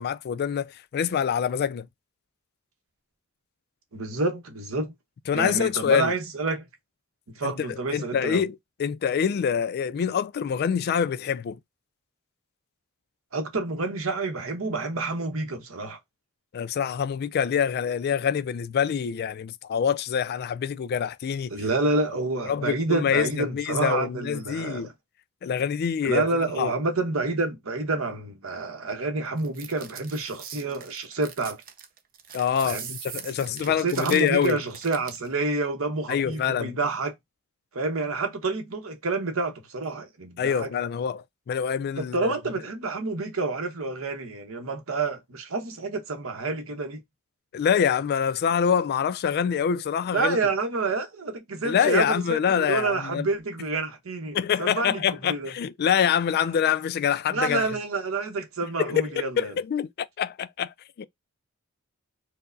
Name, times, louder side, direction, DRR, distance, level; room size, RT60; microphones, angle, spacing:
voice 1, 0.0-1.9 5.3-6.1 7.4-11.6 16.5-21.5 22.5-24.9 25.4-26.2 26.6-26.7 32.3-34.6 36.1-36.8 40.4-42.3 47.5-50.4 51.6-53.3 54.3-57.7 58.8-59.1 59.4-61.1, left 7 dB, 50° left, 0.3 m, -25 dB
voice 2, 3.9-4.9 5.3-6.7 7.3-8.4 13.3-16.0 21.5-24.9 26.0-31.6 32.6-32.9 33.5-37.1 37.7-40.7 42.0-47.0 50.1-55.5 57.3-59.5, right 3 dB, 70° right, 0.9 m, -28 dB
sound 1, 29.4-35.3, right 8 dB, 45° right, 0.6 m, -41 dB
4.5 x 2.1 x 2.6 m
head